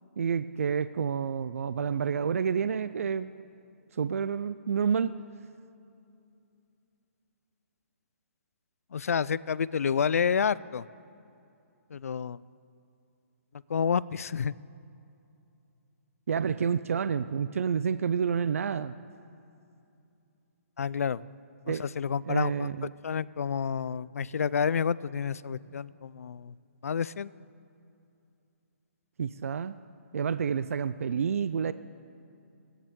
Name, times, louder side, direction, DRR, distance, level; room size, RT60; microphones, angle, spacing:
voice 1, 0.2-3.3 3.9-5.1 16.3-19.0 21.7-21.9 22.3-22.9 29.2-29.7 30.1-31.7, right 7 dB, 75° right, 14 dB, 0.4 m, -29 dB
voice 2, 8.9-10.9 11.9-12.4 13.7-14.5 20.8-21.2 21.7-22.7 23.0-26.5 26.8-27.3, left 7 dB, 90° left, 20 dB, 0.4 m, -29 dB
29.5 x 10.0 x 3.7 m, 2.7 s
hypercardioid pair, 170°, 8 cm